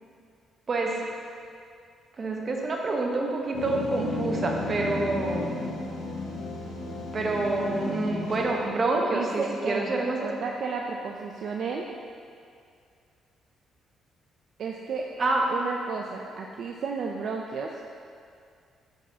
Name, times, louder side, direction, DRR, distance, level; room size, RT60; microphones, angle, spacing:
voice 1, 0.7-1.1 2.1-5.6 7.1-10.3 15.2-15.5, right 2 dB, 40° right, 0 dB, 0.9 m, -27 dB
sound 1, 3.5-8.8, left 2 dB, 90° left, 0.8 m, -33 dB
voice 2, 9.1-9.9 10.2-11.8 14.6-15.1 15.5-17.8, right 5 dB, 65° right, 0 dB, 0.4 m, -32 dB
6.1 x 5.9 x 2.8 m, 2.3 s
cardioid pair, 90°, 0 cm